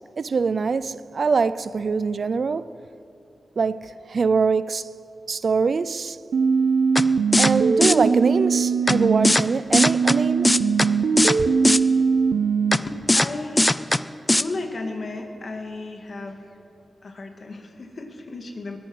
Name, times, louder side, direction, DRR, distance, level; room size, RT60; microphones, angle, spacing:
voice 1, 0.2-2.7 3.6-4.9 5.3-6.2 7.4-10.5 11.4-11.5, right 4 dB, 60° right, 0.4 m, -23 dB
sound 1, 6.3-9.3 9.7-12.8, right 5 dB, 85° right, 0.8 m, -21 dB
sound 2, 7.0-7.1 7.3-7.5 7.8-7.9 8.9-9.0 9.2-9.4 9.7-10.2 10.4-10.9 11.2-11.4 11.6-11.8 12.7-12.8 13.1-13.3 13.6-14.0 14.3-14.4, left 1 dB, 20° left, 0.4 m, -18 dB
voice 2, 12.8-13.7 14.3-16.4 17.0-18.8, left 2 dB, 55° left, 2.0 m, -34 dB
19.5 x 11.5 x 6.2 m
cardioid pair, 75°, 0 cm